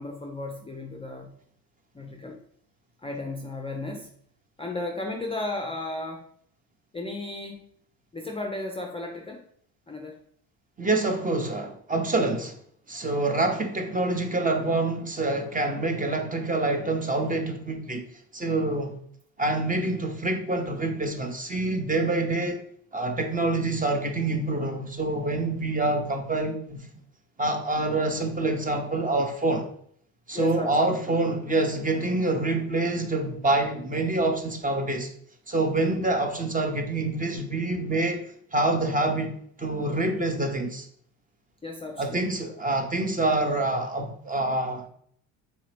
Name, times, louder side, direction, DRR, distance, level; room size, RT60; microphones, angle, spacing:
voice 1, 0.0-1.3 1.9-2.4 3.0-4.1 4.6-6.3 6.9-7.7 8.1-9.4 9.9-10.2 30.3-30.7 41.6-42.5, left 2 dB, 15° left, 1 dB, 0.5 m, -34 dB
voice 2, 10.8-12.5 12.9-18.0 18.3-18.9 19.4-22.6 22.9-26.9 27.4-29.7 30.3-35.1 35.5-38.2 38.5-40.9 42.0-44.9, right 2 dB, 20° right, 5 dB, 0.7 m, -26 dB
4.1 x 2.7 x 3.2 m, 0.63 s
supercardioid pair, 80°, 43 cm